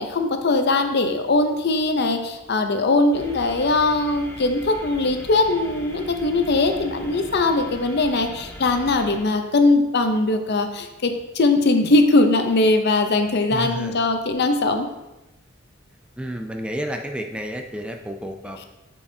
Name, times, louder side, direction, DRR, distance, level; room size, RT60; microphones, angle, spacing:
voice 1, 0.0-14.9, left 2 dB, 55° left, 6 dB, 0.6 m, -20 dB
sound 1, 3.1-9.2, equal, 10° left, 0.9 m, -40 dB
voice 2, 13.5-14.0 16.2-18.6, equal, 5° right, 4 dB, 0.4 m, -31 dB
8.5 x 4.7 x 2.7 m, 1.0 s
head